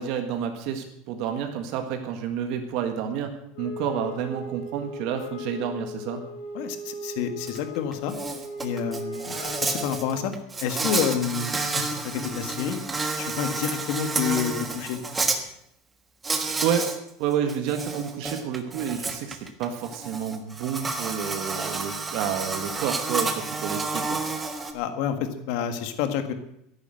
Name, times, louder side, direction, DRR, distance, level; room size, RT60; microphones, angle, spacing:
voice 1, 0.0-6.2 16.6-16.9 17.2-24.2, right 8 dB, 45° right, 6 dB, 1.7 m, -29 dB
Wind instrument woodwind instrument, 3.5-10.3, left 1 dB, 75° left, 6.2 m, -38 dB
voice 2, 6.5-8.1 8.6-10.3 10.6-12.8 13.2-15.0 24.7-26.3, left 8 dB, 50° left, 8 dB, 1.8 m, -29 dB
Insect, 7.5-7.6 7.9-15.4 16.2-17.0 17.3-24.7, right 3 dB, 10° right, 1.3 m, -30 dB
13.5 x 11.0 x 7.8 m, 0.76 s
supercardioid pair, 175°, 0 cm